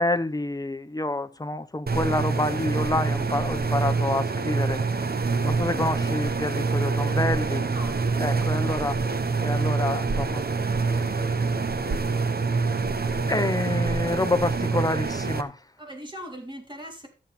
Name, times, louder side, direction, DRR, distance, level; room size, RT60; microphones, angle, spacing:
voice 1, 0.0-7.7 8.2-9.1 9.4-10.5 10.8-11.4 12.9-15.7, left 2 dB, 20° left, 1.0 m, -28 dB
sound 1, 1.9-15.4, right 4 dB, 55° right, 1.1 m, -26 dB
voice 2, 7.6-7.9 15.8-17.1, equal, 25° right, 3.5 m, -42 dB
13.5 x 7.5 x 4.3 m
wide cardioid pair, 105°, 19 cm